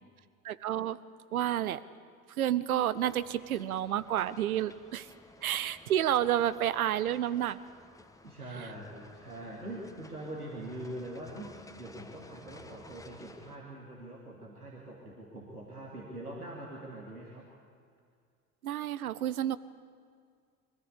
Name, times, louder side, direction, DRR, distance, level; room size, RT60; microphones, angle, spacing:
voice 1, 0.4-1.0 1.3-1.8 2.4-5.1 5.4-7.6 18.6-19.6, right 11 dB, 70° right, 16 dB, 0.8 m, -30 dB
sound 1, 2.9-13.6, left 2 dB, 5° left, 1.4 m, -55 dB
voice 2, 8.2-17.5, right 1 dB, 90° right, -4 dB, 2.4 m, -43 dB
24.0 x 15.0 x 8.4 m, 2.1 s
figure-of-eight pair, 70°, 44 cm